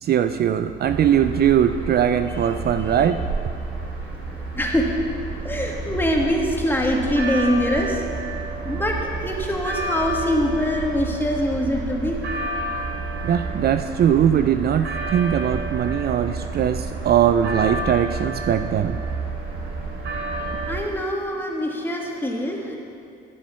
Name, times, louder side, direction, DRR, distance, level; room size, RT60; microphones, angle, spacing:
voice 1, 0.0-3.2 13.2-19.0, right 9 dB, 55° right, 9 dB, 0.4 m, -20 dB
sound 1, 0.8-20.8, right 3 dB, 75° right, 2.7 m, -30 dB
voice 2, 2.3-3.1 4.6-4.9 5.4-8.0 8.6-12.2 20.3-22.8, equal, 10° left, -1 dB, 1.8 m, -24 dB
14.0 x 6.1 x 5.7 m, 2.4 s
cardioid pair, 90°, 20 cm